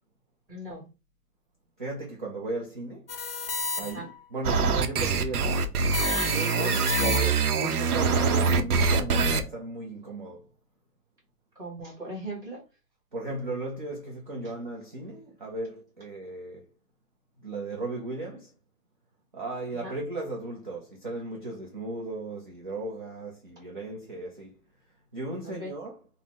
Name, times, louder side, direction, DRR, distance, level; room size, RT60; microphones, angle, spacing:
voice 1, 0.5-0.9 3.9-4.1 11.5-12.6 14.4-14.5 19.8-19.9 25.4-25.7, right 1 dB, 5° right, 1.1 m, -39 dB
voice 2, 1.8-3.1 3.8-5.8 6.1-10.5 13.1-16.6 17.4-18.5 19.3-24.6 25.1-26.0, right 2 dB, 30° right, 0.5 m, -36 dB
sound 1, 3.1-4.2 5.9-7.6, left 5 dB, 40° left, 0.4 m, -33 dB
sound 2, 4.4-9.4, right 4 dB, 65° right, 0.8 m, -24 dB
3.9 x 2.0 x 4.2 m
hypercardioid pair, 165°, 49 cm